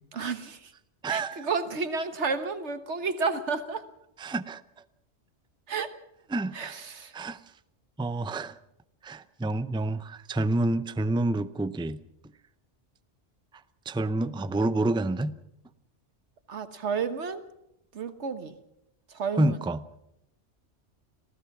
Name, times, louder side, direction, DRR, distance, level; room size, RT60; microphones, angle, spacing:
voice 1, 0.1-0.7 1.1-3.8 5.7-6.0 6.5-7.1 16.5-17.4 17.9-18.5 19.1-19.6, right 5 dB, 70° right, 10 dB, 1.6 m, -31 dB
voice 2, 1.0-1.5 4.2-4.6 6.3-6.8 7.1-7.4 8.0-8.6 9.0-12.0 13.9-15.3 19.4-19.8, right 2 dB, 5° right, 14 dB, 0.4 m, -28 dB
27.0 x 16.0 x 6.0 m, 0.81 s
omnidirectional pair, 1.2 m